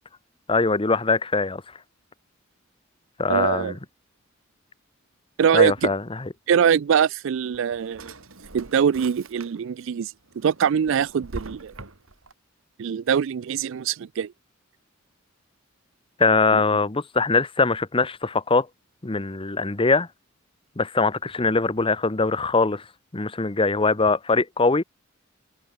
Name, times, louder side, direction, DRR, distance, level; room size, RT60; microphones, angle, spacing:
voice 1, 0.5-1.6 3.2-3.8 5.5-6.3 16.2-18.7 19.0-20.1 20.8-22.8 23.1-24.8, left 3 dB, 25° left, 0.9 m, -22 dB
voice 2, 3.3-3.7 5.4-5.9 6.5-8.1 8.5-10.1 10.4-11.7 12.8-14.3, right 7 dB, 65° right, 0.4 m, -22 dB
Drawer open or close, 7.4-9.8 10.3-12.3, right 2 dB, 90° right, 3.0 m, -42 dB
head